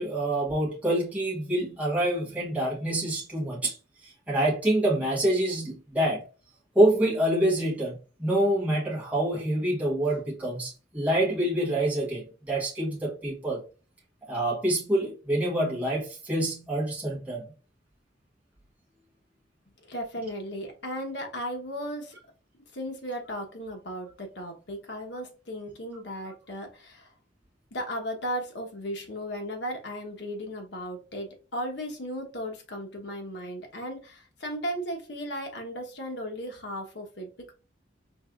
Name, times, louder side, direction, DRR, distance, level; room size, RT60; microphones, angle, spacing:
voice 1, 0.0-3.7 4.0-6.2 6.7-13.6 14.3-17.5, right 1 dB, 10° right, 1.1 m, -26 dB
voice 2, 19.8-22.2 22.7-27.1 27.7-37.5, equal, 65° left, 1.0 m, -36 dB
4.6 x 3.3 x 2.4 m
head